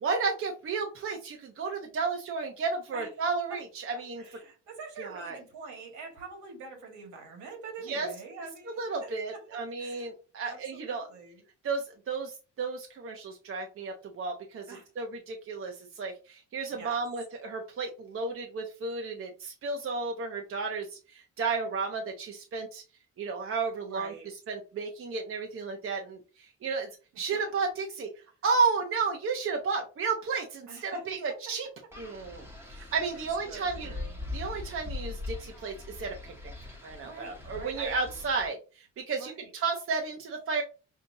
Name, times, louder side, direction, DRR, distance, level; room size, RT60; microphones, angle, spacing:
voice 1, 0.0-4.2 5.0-5.4 7.9-8.1 8.8-11.1 11.6-22.8 23.2-24.1 24.5-26.9 27.2-28.1 28.4-31.7 32.0-33.9 34.3-36.3 36.8-40.6, right 4 dB, 45° right, 0.8 m, -33 dB
voice 2, 4.2-10.1 10.4-11.4 14.7-14.9 16.7-17.0 23.9-24.3 30.7-31.2 32.7-34.2 37.0-38.0 39.2-39.5, right 4 dB, 75° right, 1.8 m, -45 dB
Wind, 31.9-38.5, left 3 dB, 10° right, 1.2 m, -41 dB
5.5 x 2.5 x 2.7 m
cardioid pair, 90°, 30 cm